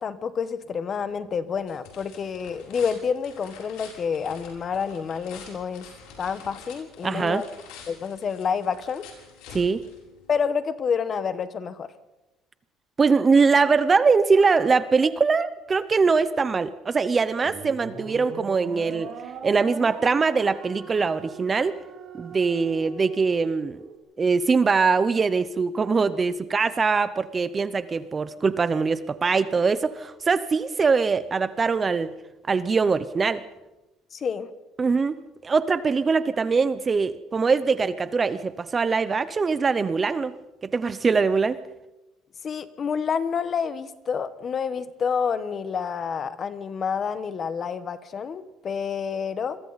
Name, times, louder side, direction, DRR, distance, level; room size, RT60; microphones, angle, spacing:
voice 1, 0.0-5.8 6.2-7.5 7.9-9.1 10.3-11.9 34.1-34.5 42.4-49.6, left 6 dB, 30° left, 13 dB, 1.0 m, -28 dB
sound 1, 1.0-10.4, left 6 dB, 85° left, 6.7 m, -47 dB
voice 2, 7.0-7.4 9.5-9.8 13.0-19.1 19.4-21.8 22.1-23.8 24.2-32.1 32.5-33.4 34.8-35.2 35.4-40.4 40.6-41.6, right 4 dB, 20° right, 14 dB, 0.6 m, -22 dB
sound 2, 17.4-24.0, right 5 dB, 40° right, 3.8 m, -40 dB
29.0 x 22.5 x 4.1 m, 1.0 s
cardioid pair, 170°, 0 cm